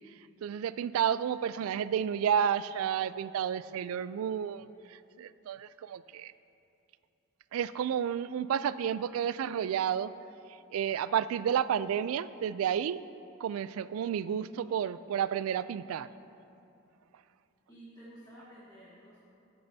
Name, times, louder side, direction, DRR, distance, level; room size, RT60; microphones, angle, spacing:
voice 1, 0.4-6.3 7.5-10.1 10.7-13.0 13.4-16.1, right 8 dB, 85° right, 16 dB, 0.3 m, -31 dB
voice 2, 17.7-19.2, right 1 dB, 20° left, -9 dB, 1.4 m, -52 dB
16.0 x 8.6 x 2.7 m, 2.8 s
head